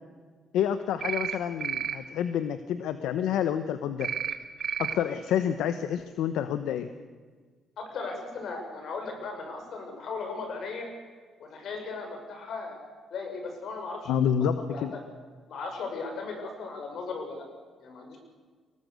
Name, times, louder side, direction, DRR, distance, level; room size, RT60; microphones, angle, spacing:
voice 1, 0.5-4.1 4.8-6.9 14.1-14.9, left 9 dB, 85° left, 11 dB, 1.0 m, -28 dB
sound 1, 1.0-1.4 1.6-2.0 4.0-4.3 4.6-4.9, right 8 dB, 55° right, 2.1 m, -31 dB
voice 2, 7.8-10.9 11.4-12.8 13.1-14.1 14.7-14.8 15.5-17.5 17.8-18.2, left 4 dB, 70° left, 3 dB, 6.8 m, -37 dB
24.0 x 18.5 x 6.7 m, 1.5 s
cardioid pair, 90°, 0 cm